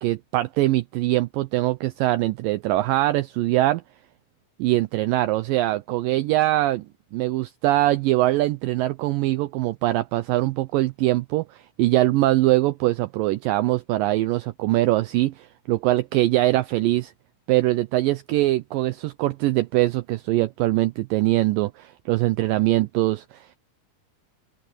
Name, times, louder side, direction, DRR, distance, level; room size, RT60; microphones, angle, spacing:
voice 1, 0.0-3.8 4.6-6.9 7.1-17.1 17.5-23.6, right 17 dB, 80° right, 2.1 m, -22 dB
open air
omnidirectional pair, 4.5 m